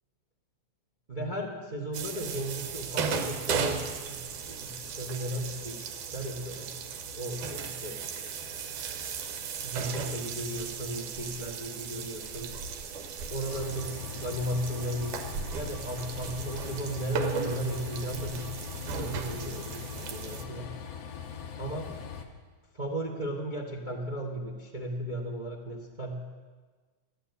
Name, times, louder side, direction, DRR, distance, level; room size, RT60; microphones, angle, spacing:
voice 1, 1.1-4.2 4.5-5.8 6.1-6.7 7.1-8.0 9.6-12.5 13.3-15.2 15.5-20.7 21.6-21.9 22.7-26.2, right 1 dB, 50° right, 1 dB, 0.5 m, -35 dB
sound 1, 1.9-20.4, right 5 dB, 80° right, 2.6 m, -36 dB
Train, 13.4-22.3, left 7 dB, 65° left, 1.9 m, -41 dB
12.5 x 11.5 x 8.1 m, 1.4 s
omnidirectional pair, 3.6 m